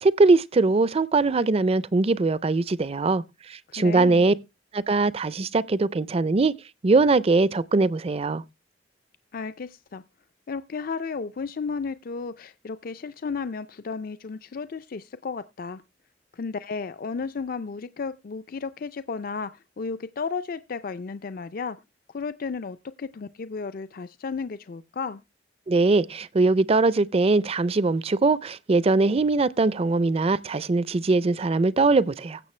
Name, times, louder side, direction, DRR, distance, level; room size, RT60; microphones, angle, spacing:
voice 1, 0.0-4.3 4.7-6.5 6.8-8.4 25.7-32.4, right 3 dB, 35° right, 0.5 m, -21 dB
voice 2, 3.7-4.3 9.3-10.0 10.5-15.8 16.3-21.8 22.1-25.2, left 5 dB, 50° left, 0.4 m, -33 dB
16.0 x 6.6 x 3.2 m
head